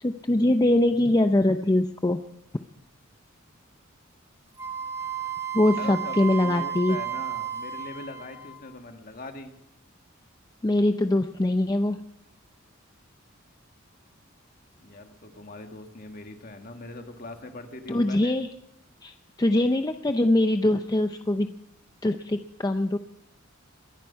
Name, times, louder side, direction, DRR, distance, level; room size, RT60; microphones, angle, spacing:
voice 1, 0.0-2.2 5.5-7.0 10.6-12.1 17.9-18.5 19.0-21.5 22.0-23.0, left 1 dB, 20° left, 8 dB, 0.5 m, -23 dB
Wind instrument woodwind instrument, 4.6-8.7, right 9 dB, 15° right, 1.2 m, -33 dB
voice 2, 5.8-9.5 14.8-18.4, left 2 dB, 45° left, 5 dB, 1.7 m, -41 dB
22.0 x 10.5 x 5.7 m, 0.79 s
head